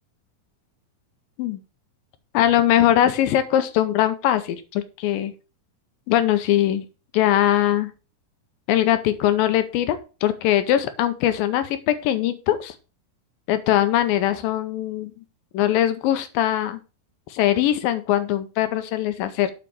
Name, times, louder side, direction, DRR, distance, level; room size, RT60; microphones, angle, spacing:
voice 1, 2.3-5.3 6.1-6.9 7.1-7.9 8.7-12.7 13.5-15.1 15.5-16.8 17.3-19.5, left 12 dB, 80° left, 11 dB, 2.4 m, -21 dB
8.1 x 4.8 x 5.4 m, 0.33 s
omnidirectional pair, 4.2 m